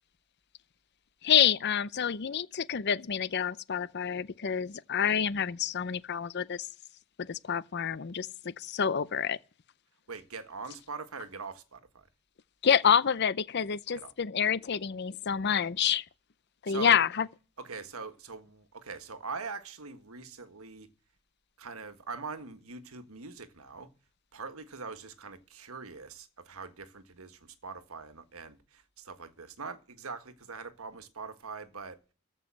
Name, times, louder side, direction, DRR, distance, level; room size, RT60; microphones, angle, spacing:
voice 1, 1.2-6.7 7.3-9.4 12.6-16.0 16.6-17.3, left 8 dB, 50° left, 0.6 m, -28 dB
voice 2, 10.1-12.1 13.9-14.1 16.7-17.3 17.6-20.9 21.6-23.9 24.3-32.0, right 4 dB, 75° right, 1.5 m, -42 dB
14.5 x 5.5 x 7.6 m
head